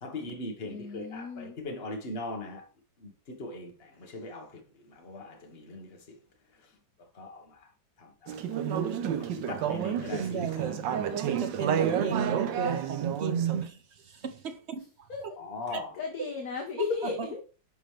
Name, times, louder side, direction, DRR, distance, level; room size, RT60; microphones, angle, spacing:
voice 1, 0.0-2.6 3.0-4.5 4.9-6.0 7.2-7.6 8.0-8.6 9.2-10.7 15.4-15.9, left 2 dB, 35° left, 1.7 m, -40 dB
voice 2, 0.6-1.6 15.1-15.2 15.9-17.4, left 5 dB, 55° left, 1.5 m, -34 dB
Conversation / Chatter, 8.3-13.7, right 8 dB, 85° right, 1.5 m, -30 dB
voice 3, 10.1-10.8 11.4-14.8 15.2-15.3 15.7-15.8 17.0-17.3, right 7 dB, 60° right, 0.7 m, -33 dB
10.0 x 5.5 x 3.3 m
omnidirectional pair, 2.0 m